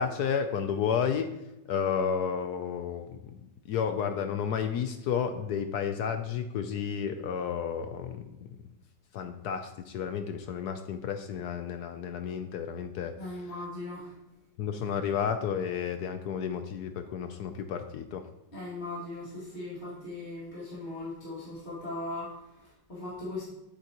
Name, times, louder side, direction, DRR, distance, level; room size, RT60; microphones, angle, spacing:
voice 1, 0.0-1.3 1.7-3.3 3.7-8.4 9.1-13.1 14.6-18.2, left 7 dB, 70° left, 7 dB, 1.1 m, -31 dB
voice 2, 13.2-14.1 18.5-23.4, left 2 dB, 35° left, -9 dB, 2.7 m, -39 dB
11.0 x 8.4 x 3.0 m, 0.94 s
omnidirectional pair, 1.9 m